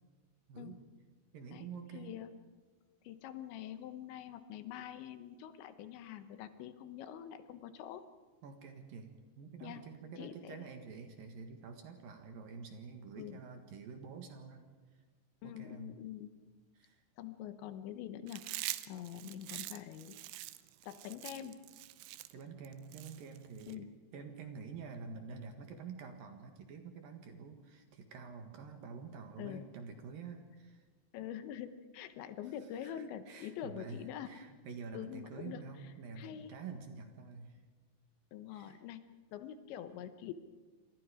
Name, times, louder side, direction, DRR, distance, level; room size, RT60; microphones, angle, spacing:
voice 1, 0.5-0.8 1.3-2.2 4.8-4.9 8.4-14.7 15.4-16.0 16.7-17.0 22.3-23.9 24.1-30.8 32.8-37.6 38.5-38.8, right 5 dB, 60° right, 5 dB, 3.0 m, -48 dB
voice 2, 1.9-2.3 3.0-8.0 9.6-9.8 10.2-10.7 13.2-13.4 15.4-16.3 17.2-20.1 20.8-21.6 23.7-23.9 29.4-29.7 31.1-34.3 34.9-35.6 36.2-36.5 38.3-39.0 39.3-40.3, left 10 dB, 80° left, 10 dB, 3.3 m, -45 dB
Chewing mastication, 18.3-23.7, right 16 dB, 90° right, 3.2 m, -44 dB
29.0 x 25.5 x 5.0 m, 1.4 s
omnidirectional pair, 5.3 m